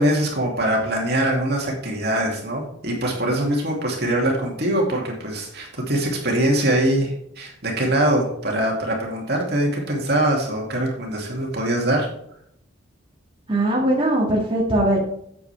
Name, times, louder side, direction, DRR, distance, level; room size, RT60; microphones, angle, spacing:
voice 1, 0.0-12.1, right 1 dB, 55° right, -1 dB, 2.5 m, -23 dB
voice 2, 13.5-15.0, right 1 dB, 25° right, -4 dB, 2.1 m, -20 dB
8.5 x 8.3 x 3.4 m, 0.70 s
head